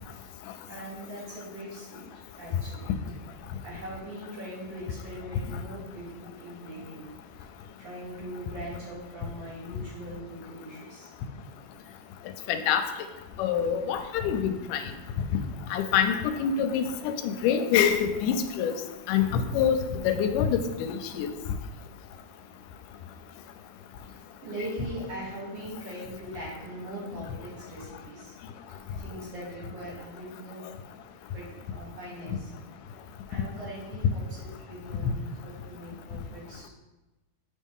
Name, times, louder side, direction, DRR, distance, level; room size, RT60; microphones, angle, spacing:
voice 1, 0.7-2.0 2.4-2.9 3.6-7.1 7.8-11.1 11.7-11.8 24.1-28.3 29.0-30.7 31.3-32.5 33.3-36.7, right 1 dB, 55° right, -6 dB, 3.0 m, -41 dB
voice 2, 12.5-12.8 13.4-14.8 15.7-18.7 19.1-19.8 20.0-20.6 20.9-21.3, left 8 dB, 85° left, 8 dB, 2.1 m, -25 dB
7.7 x 5.3 x 3.6 m, 1.1 s
omnidirectional pair, 3.6 m